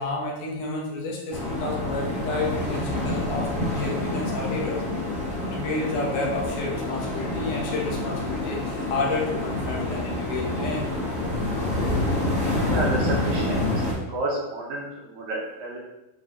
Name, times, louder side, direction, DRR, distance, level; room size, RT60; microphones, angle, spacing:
voice 1, 0.0-4.8 5.5-10.9, left 2 dB, 70° left, -2 dB, 2.4 m, -30 dB
sound 1, 1.3-13.9, left 1 dB, 10° right, 0.4 m, -27 dB
voice 2, 12.7-13.8 14.1-15.8, right 2 dB, 70° right, -2 dB, 2.0 m, -30 dB
7.9 x 4.1 x 3.0 m, 0.98 s
omnidirectional pair, 3.9 m